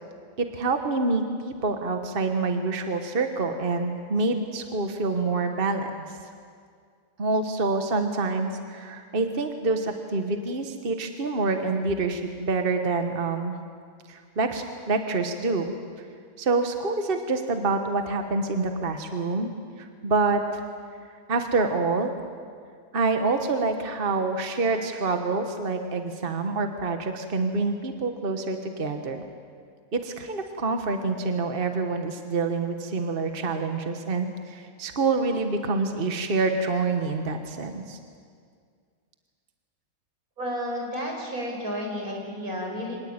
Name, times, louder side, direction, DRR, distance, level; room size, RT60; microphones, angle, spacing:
voice 1, 0.4-6.1 7.2-13.5 14.1-15.7 16.4-19.5 19.8-20.6 21.3-22.1 22.9-29.2 29.9-38.0, right 3 dB, 40° right, 6 dB, 1.5 m, -27 dB
voice 2, 40.4-43.0, equal, 85° right, 0 dB, 5.4 m, -31 dB
24.5 x 19.5 x 8.9 m, 2.1 s
omnidirectional pair, 1.5 m